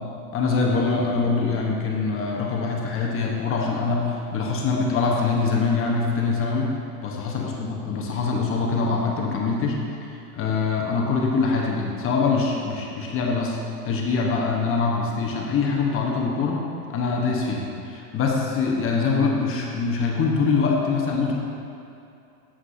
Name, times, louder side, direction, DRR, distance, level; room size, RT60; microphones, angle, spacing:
voice 1, 0.3-6.7 7.0-13.6 13.8-21.4, left 4 dB, 30° left, -1 dB, 1.2 m, -24 dB
9.6 x 7.7 x 2.8 m, 2.7 s
hypercardioid pair, 115°, 47 cm